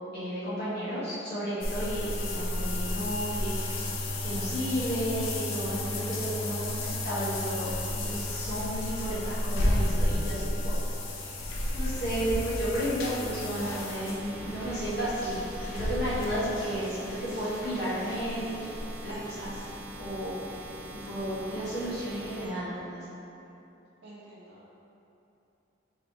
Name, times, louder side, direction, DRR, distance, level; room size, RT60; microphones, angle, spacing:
voice 1, 0.1-3.8 4.2-10.7 11.2-11.4 11.7-18.6 19.0-19.6 20.0-23.0, equal, 50° left, -11 dB, 1.3 m, -33 dB
sound 1, 1.6-20.3 20.6-20.7 21.2-21.3, left 1 dB, 85° left, 0.5 m, -33 dB
sound 2, 13.3-22.5, right 1 dB, 10° right, 0.4 m, -44 dB
voice 2, 24.0-24.7, right 1 dB, 65° right, -8 dB, 0.5 m, -50 dB
3.9 x 2.8 x 3.2 m, 2.8 s
head